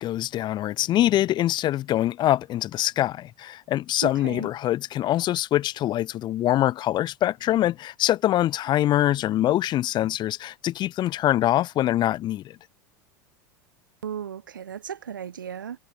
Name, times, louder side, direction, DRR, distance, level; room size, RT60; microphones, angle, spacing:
voice 1, 0.0-12.6, left 13 dB, 45° left, 5.7 m, -24 dB
voice 2, 4.0-4.5 14.0-15.8, right 8 dB, 90° right, 5.1 m, -35 dB
hypercardioid pair, 90°, 10 cm